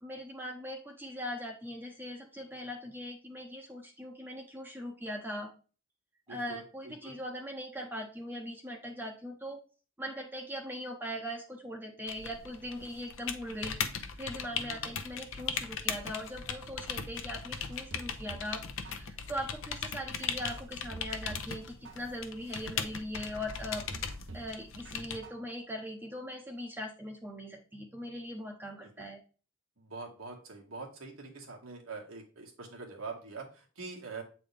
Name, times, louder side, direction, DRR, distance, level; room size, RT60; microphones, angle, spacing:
voice 1, 0.0-5.5 6.3-9.6 10.0-13.8 14.2-23.9 24.3-29.2, equal, 10° right, 0 dB, 0.7 m, -40 dB
voice 2, 6.3-6.6 7.0-7.1 14.5-14.9 28.8-28.9 29.8-34.2, right 4 dB, 85° right, 0 dB, 1.9 m, -44 dB
sound 1, 12.1-25.2, left 6 dB, 75° left, 0.7 m, -39 dB
sound 2, 17.5-18.6 18.8-19.5 20.0-20.1 20.5-21.6 21.8-22.5 23.0-23.1 23.5-24.6 24.8-25.5 25.8-25.9, right 2 dB, 60° right, 0.8 m, -48 dB
8.1 x 4.1 x 3.3 m, 0.35 s
head